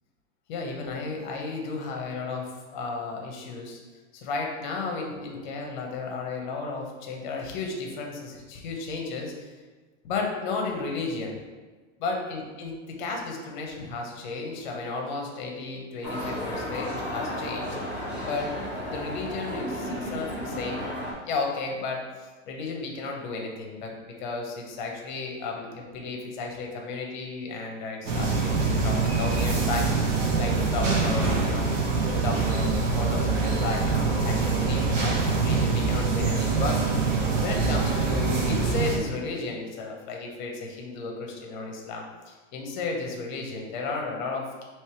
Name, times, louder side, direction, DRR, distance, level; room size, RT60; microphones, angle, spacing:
voice 1, 0.5-3.8 4.1-9.5 10.0-11.4 12.0-17.8 18.2-18.5 18.9-20.9 21.3-31.7 32.1-36.8 37.4-44.6, left 3 dB, 40° left, 1 dB, 0.7 m, -33 dB
shanghai railway station, 16.0-21.1, equal, 5° right, 0.6 m, -33 dB
sound 1, 28.1-39.0, right 4 dB, 80° right, 1.0 m, -24 dB
3.2 x 3.1 x 4.3 m, 1.3 s
supercardioid pair, 180°, 37 cm